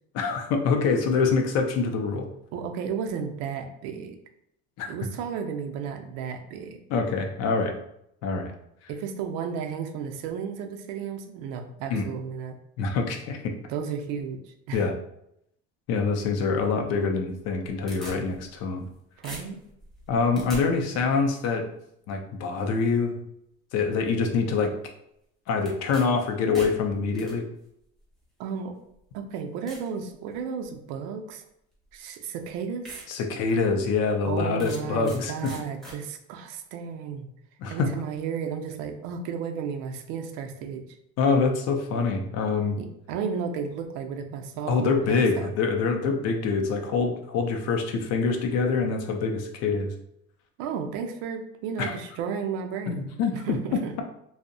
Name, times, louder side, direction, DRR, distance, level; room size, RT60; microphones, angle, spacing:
voice 1, 0.1-2.3 4.8-4.9 6.9-7.7 8.2-8.5 11.9-12.1 12.8-13.5 14.7-14.9 15.9-18.8 20.1-21.6 22.1-23.1 23.7-24.7 25.5-27.5 33.1-35.5 37.6-37.9 41.2-42.8 44.7-49.9 51.8-51.9 52.9-53.6, left 4 dB, 50° left, 4 dB, 0.4 m, -25 dB
voice 2, 2.5-4.2 4.9-6.8 8.9-12.6 13.7-14.8 19.2-19.6 28.4-28.7 29.1-31.4 31.9-33.0 34.2-37.3 37.7-40.8 42.8-45.5 50.6-54.0, right 6 dB, 70° right, 5 dB, 0.5 m, -33 dB
sound 1, 17.4-18.9 19.2-20.6 25.6-26.0 26.4-27.3 28.2-28.3 28.9-29.0 29.7-29.9 30.4-30.8 31.9-32.0 32.4-32.5 32.8-33.1 33.5-33.6 34.6-35.2 35.4-36.0, equal, ahead, 0.6 m, -42 dB
2.6 x 2.0 x 2.5 m, 0.77 s
cardioid pair, 160°, 32 cm